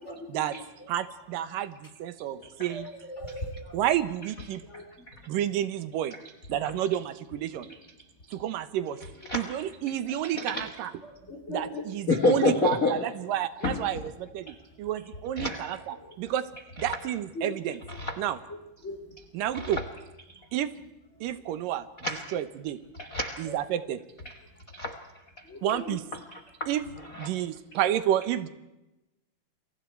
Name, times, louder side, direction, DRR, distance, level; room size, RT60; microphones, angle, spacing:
voice 1, 0.9-2.9 3.7-4.6 5.3-6.1 6.5-7.7 8.3-9.0 9.3-10.9 11.5-16.5 16.8-17.8 18.2-18.4 19.3-19.8 20.5-20.7 21.2-21.9 22.3-22.8 23.4-24.0 25.6-26.0 26.7-26.8 27.2-28.5, right 11 dB, 80° right, 13 dB, 2.6 m, -30 dB
voice 2, 2.3-2.8 3.1-3.8 4.7-4.8 11.3-11.8 17.4-17.5 18.5-19.0 23.5-23.6 25.5-25.9, left 1 dB, 20° left, 5 dB, 2.7 m, -38 dB
voice 3, 4.7-5.1 9.3-9.5 10.3-10.6 12.1-13.0 13.6-13.8 14.5-14.6 15.4-15.7 18.0-18.2 22.0-22.3 23.0-23.5 24.2-24.3 24.7-25.0 26.3-26.7 27.1-27.3, left 3 dB, 50° left, 6 dB, 1.0 m, -28 dB
29.0 x 23.5 x 4.5 m, 0.98 s
omnidirectional pair, 3.9 m